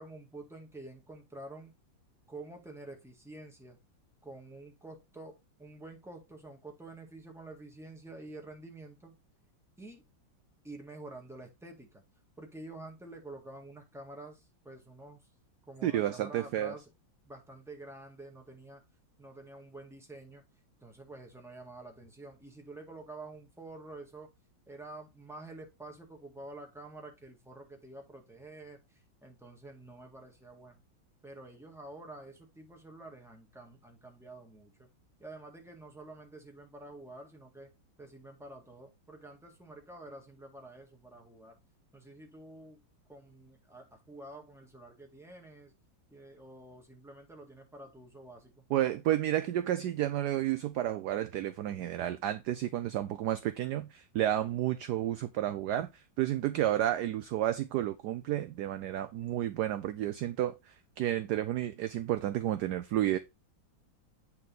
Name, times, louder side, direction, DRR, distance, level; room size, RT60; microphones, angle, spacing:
voice 1, 0.0-1.7 2.3-3.8 4.2-9.1 9.8-10.0 10.6-12.0 12.4-15.3 15.6-16.9 17.2-18.8 19.2-20.4 20.8-24.3 24.7-30.8 31.2-34.9 35.2-37.7 38.0-41.6 41.9-42.8 43.1-45.7 46.1-48.7, right 2 dB, ahead, 1.7 m, -48 dB
voice 2, 15.8-16.7 48.7-63.2, right 12 dB, 70° right, 1.0 m, -31 dB
8.7 x 4.2 x 3.9 m
omnidirectional pair, 2.1 m